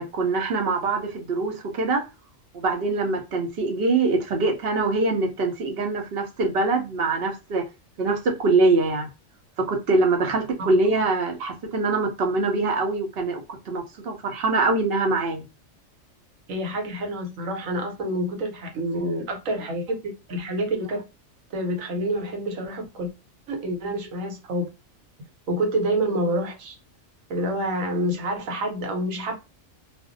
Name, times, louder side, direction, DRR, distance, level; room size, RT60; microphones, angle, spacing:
voice 1, 0.0-2.0 2.5-7.6 8.0-9.1 9.6-15.5, right 3 dB, 60° right, 0.7 m, -23 dB
voice 2, 16.5-20.0 20.3-21.0 21.5-23.1 23.5-24.7 25.5-26.8 27.3-29.3, right 1 dB, 80° right, 1.1 m, -27 dB
2.5 x 2.0 x 2.4 m
omnidirectional pair, 1.4 m